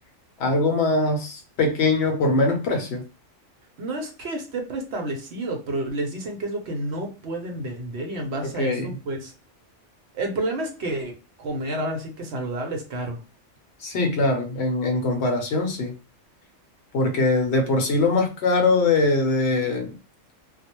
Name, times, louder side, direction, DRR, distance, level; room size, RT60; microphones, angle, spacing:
voice 1, 0.4-3.0 8.6-8.9 13.8-15.9 16.9-19.9, left 3 dB, 65° left, 0.8 m, -22 dB
voice 2, 3.8-9.3 10.1-11.1 11.4-13.2 14.2-14.3, right 1 dB, 65° right, 0.8 m, -30 dB
2.3 x 2.1 x 2.8 m
omnidirectional pair, 1.3 m